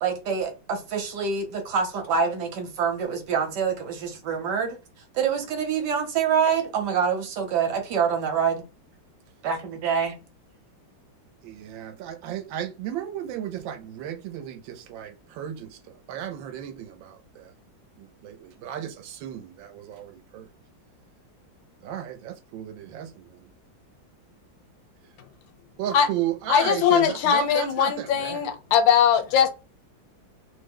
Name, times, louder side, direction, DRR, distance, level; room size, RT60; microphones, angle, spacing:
voice 1, 0.0-4.8 5.1-8.6 9.4-10.2, right 6 dB, 65° right, 1.3 m, -26 dB
voice 2, 11.4-17.5 18.0-20.5 21.8-23.5 25.8-28.5, right 11 dB, 85° right, 1.3 m, -34 dB
voice 3, 26.5-29.5, left 8 dB, 80° left, 1.3 m, -20 dB
3.2 x 2.1 x 3.6 m
omnidirectional pair, 2.1 m